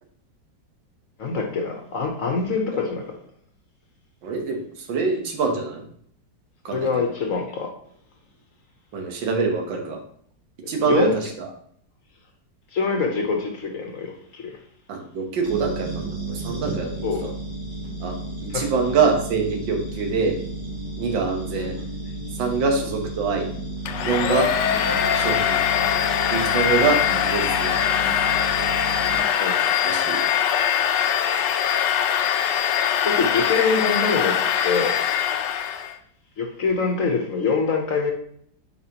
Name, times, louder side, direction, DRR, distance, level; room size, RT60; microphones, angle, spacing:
voice 1, 1.2-3.2 6.7-7.7 10.8-11.3 12.7-14.6 17.0-17.2 18.5-18.7 21.6-21.7 24.7-25.0 26.9-27.2 29.4-29.8 31.7-31.8 33.0-34.4 34.6-34.9 35.2-35.4 36.4-38.1, left 5 dB, 55° left, 3 dB, 1.1 m, -25 dB
voice 2, 4.2-5.9 6.7-7.1 8.9-10.0 10.7-11.5 14.9-17.3 18.0-20.4 21.0-21.8 22.4-23.5 24.0-24.5 25.1-25.6 26.3-27.8 29.8-30.2, right 4 dB, 85° right, 3 dB, 1.9 m, -24 dB
sound 1, 15.4-29.2, right 2 dB, 65° right, 2.8 m, -33 dB
Domestic sounds home sounds, 23.9-36.0, left 9 dB, 80° left, 1.2 m, -22 dB
8.4 x 4.8 x 2.9 m, 0.64 s
omnidirectional pair, 2.0 m